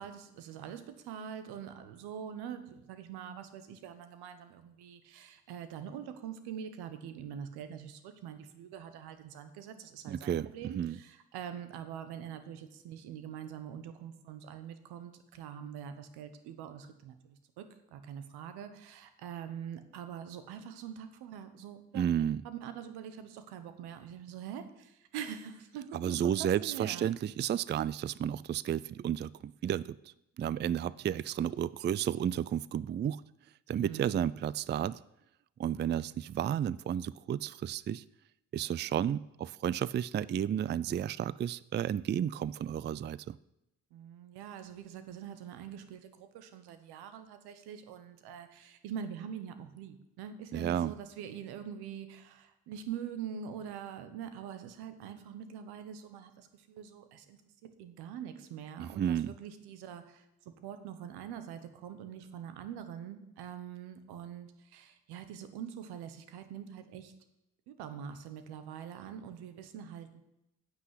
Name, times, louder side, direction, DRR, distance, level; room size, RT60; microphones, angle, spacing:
voice 1, 0.0-27.1 33.8-34.2 43.9-67.1 67.7-70.2, right 8 dB, 85° right, 10 dB, 1.1 m, -44 dB
voice 2, 10.1-10.5 10.7-11.0 21.9-22.4 25.9-30.0 30.4-33.2 33.7-35.0 35.6-38.0 38.5-43.4 50.5-50.9 58.8-59.3, right 9 dB, 30° right, 20 dB, 0.4 m, -32 dB
9.5 x 6.1 x 8.2 m, 0.86 s
supercardioid pair, 55°, 38 cm